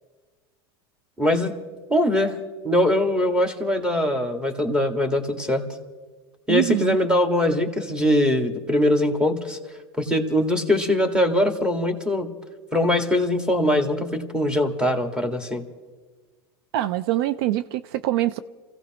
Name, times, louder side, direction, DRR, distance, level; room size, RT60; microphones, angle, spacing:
voice 1, 1.2-1.5 1.9-2.4 2.6-5.6 6.5-9.6 10.0-12.3 12.7-15.7, left 1 dB, 5° right, 1.9 m, -22 dB
voice 2, 6.5-7.0 16.7-18.4, right 14 dB, 70° right, 0.5 m, -24 dB
28.0 x 16.0 x 3.0 m
supercardioid pair, 110°, 13 cm